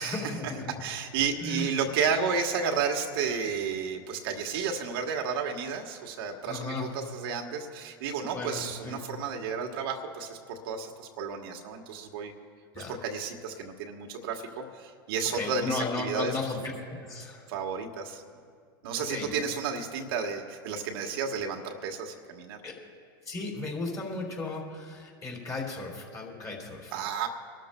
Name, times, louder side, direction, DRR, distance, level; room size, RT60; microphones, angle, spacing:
voice 1, 0.0-0.7 1.4-1.7 6.5-6.9 8.2-9.0 12.7-13.0 15.3-17.5 19.0-19.4 22.6-22.7 23.3-26.9, left 3 dB, 25° left, -1 dB, 3.5 m, -35 dB
voice 2, 0.8-12.3 12.8-16.4 17.5-18.2 18.8-22.6 26.9-27.3, right 6 dB, 70° right, 3 dB, 1.3 m, -32 dB
25.5 x 13.0 x 2.2 m, 2.2 s
hypercardioid pair, 110°, 13 cm